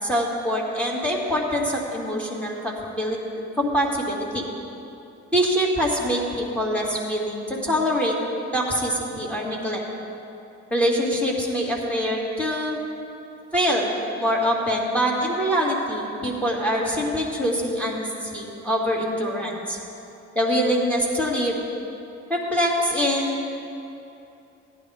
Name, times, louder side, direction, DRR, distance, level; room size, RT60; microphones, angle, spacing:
voice 1, 0.0-3.2 3.6-4.4 5.3-8.1 8.5-9.8 10.7-12.8 13.5-19.8 20.4-21.6 22.3-23.4, equal, 5° left, -2 dB, 2.1 m, -24 dB
15.0 x 10.5 x 3.5 m, 2.8 s
cardioid pair, 90°, 30 cm